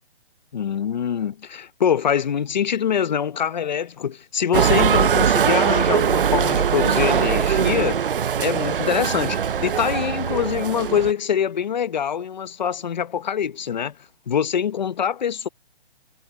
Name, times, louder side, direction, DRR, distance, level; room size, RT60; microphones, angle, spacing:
voice 1, 0.5-8.0 8.4-14.0 14.3-15.5, left 8 dB, 40° left, 1.1 m, -24 dB
sound 1, 4.5-11.1, right 8 dB, 55° right, 0.8 m, -21 dB
hypercardioid pair, 170°, 33 cm